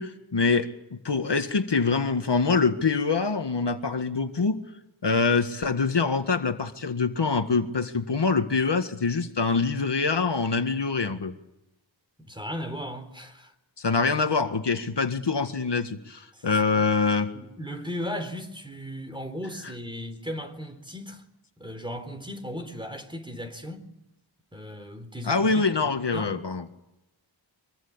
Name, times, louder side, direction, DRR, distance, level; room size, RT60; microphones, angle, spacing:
voice 1, 0.0-4.6 5.0-11.3 13.8-17.3 25.2-26.7, left 4 dB, 60° left, 1.8 m, -25 dB
voice 2, 12.2-13.5 16.3-16.6 17.3-21.2 21.6-23.9 24.5-26.3, equal, 10° right, 4.1 m, -37 dB
25.0 x 23.0 x 8.7 m
wide cardioid pair, 80°, 48 cm